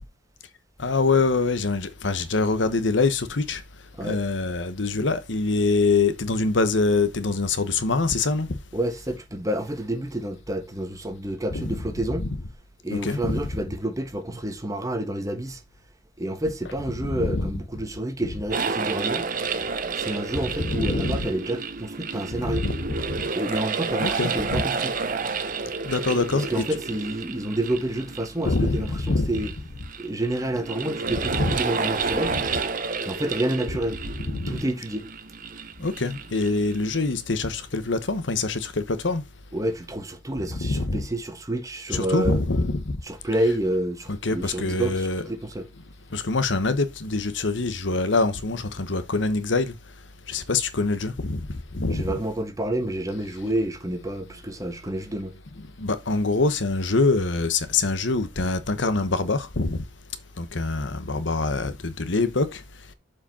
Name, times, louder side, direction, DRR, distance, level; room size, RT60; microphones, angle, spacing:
voice 1, 0.8-3.6 4.0-8.6 11.5-12.4 12.9-13.5 17.0-17.5 20.6-21.3 22.4-23.2 24.0-24.6 25.8-26.7 28.5-29.5 31.3-31.5 34.3-34.6 35.8-39.2 40.5-41.0 41.9-43.0 43.3-43.6 44.1-45.2 46.1-49.7 50.3-52.2 55.6-59.8 60.4-62.6, left 3 dB, 75° left, 1.0 m, -25 dB
voice 2, 8.7-12.3 12.8-15.6 16.2-19.3 19.9-22.7 23.3-24.9 26.3-29.5 30.0-32.4 33.0-34.0 34.5-35.1 39.5-42.4 43.0-45.7 51.9-55.3, right 1 dB, 20° right, 1.3 m, -29 dB
sound 1, 18.5-37.1, right 4 dB, 45° right, 0.8 m, -30 dB
7.2 x 5.1 x 4.2 m
head